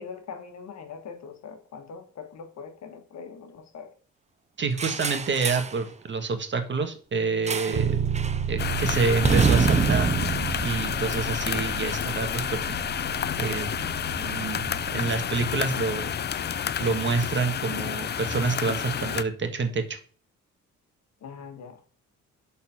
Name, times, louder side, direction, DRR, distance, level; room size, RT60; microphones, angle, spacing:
voice 1, 0.0-3.9 21.2-21.8, left 6 dB, 60° left, 7 dB, 1.5 m, -42 dB
voice 2, 4.6-8.0 8.5-10.1 10.6-12.7 13.4-13.7 14.1-16.2 16.8-20.0, right 4 dB, 40° right, 7 dB, 1.4 m, -28 dB
sound 1, 4.8-5.8 7.5-7.9 8.1-8.4 9.2-11.6, right 5 dB, 25° right, 0.6 m, -26 dB
Bass guitar, 7.7-17.6, right 7 dB, 65° right, 1.3 m, -33 dB
sound 2, 8.6-19.2, left 8 dB, 35° left, 0.4 m, -30 dB
6.7 x 4.2 x 5.7 m, 0.43 s
cardioid pair, 90°, 30 cm